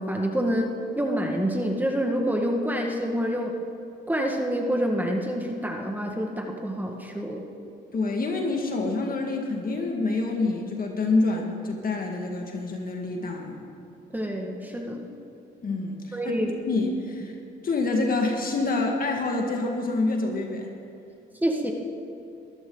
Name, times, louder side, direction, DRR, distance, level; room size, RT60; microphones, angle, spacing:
voice 1, 0.0-3.5 4.1-7.4 14.1-15.1 16.1-16.5 21.4-21.7, equal, 10° right, 1 dB, 1.7 m, -27 dB
voice 2, 7.9-13.6 15.6-16.3 16.7-17.3 17.6-20.7, left 3 dB, 45° left, 2 dB, 1.9 m, -27 dB
22.0 x 13.5 x 3.9 m, 2.6 s
cardioid pair, 90°, 20 cm